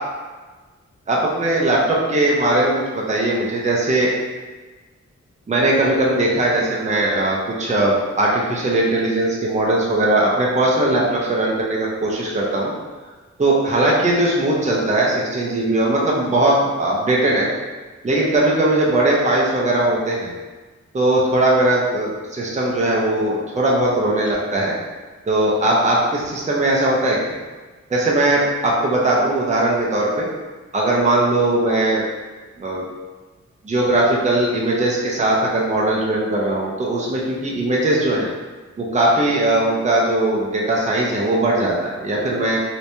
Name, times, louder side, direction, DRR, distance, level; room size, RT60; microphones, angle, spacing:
voice 1, 1.1-4.1 5.5-12.7 13.4-17.5 18.0-20.3 20.9-24.8 25.3-27.4 27.9-30.3 30.7-32.0 32.6-32.8 33.6-38.3 38.8-42.6, right 1 dB, 25° right, -4 dB, 0.6 m, -19 dB
3.3 x 3.1 x 2.7 m, 1.3 s
wide cardioid pair, 145°, 29 cm